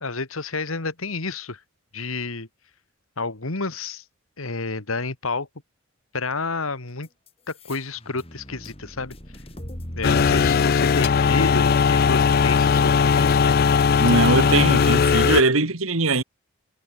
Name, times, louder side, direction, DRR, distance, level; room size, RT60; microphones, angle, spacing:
voice 1, 0.0-1.6 1.9-2.5 3.2-4.0 4.4-5.5 6.1-7.1 7.6-9.2 9.9-13.6, left 3 dB, 75° left, 2.1 m, -30 dB
sound 1, 7.0-12.0, equal, 25° left, 3.9 m, -38 dB
sound 2, 10.0-15.4, left 6 dB, 45° left, 0.4 m, -18 dB
voice 2, 14.0-16.2, right 3 dB, 75° right, 2.1 m, -21 dB
head